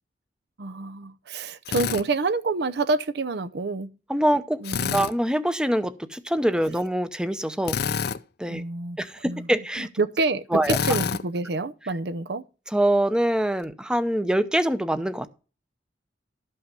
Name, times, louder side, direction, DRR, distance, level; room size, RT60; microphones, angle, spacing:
voice 1, 0.6-4.0 4.6-5.0 8.5-9.5 9.8-12.4, right 3 dB, 65° right, 0.7 m, -28 dB
Drill, 1.7-2.0 4.6-5.1 7.6-8.2 10.6-11.2, left 6 dB, 60° left, 0.5 m, -27 dB
voice 2, 4.1-4.6 4.9-7.8 8.4-8.6 9.0-9.9 10.5-10.8 12.7-15.3, right 1 dB, 5° right, 0.7 m, -24 dB
12.5 x 5.7 x 5.2 m
head